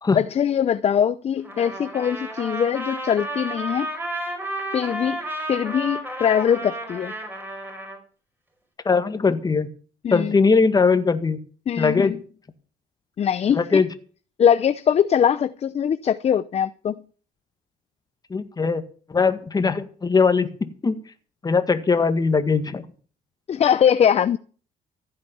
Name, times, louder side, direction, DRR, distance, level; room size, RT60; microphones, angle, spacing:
voice 1, 0.1-3.9 4.7-5.2 5.5-7.1 10.0-10.4 11.7-12.2 13.2-13.8 14.4-17.0 23.5-24.4, left 8 dB, 40° left, 0.7 m, -21 dB
Trumpet, 1.4-8.0, right 1 dB, 10° right, 5.2 m, -32 dB
voice 2, 8.9-9.7 10.1-11.4 11.8-12.1 13.5-13.9 18.3-18.8 19.1-21.0 21.4-22.9, left 4 dB, 25° left, 1.9 m, -20 dB
15.5 x 8.8 x 7.2 m
cardioid pair, 110°, 17 cm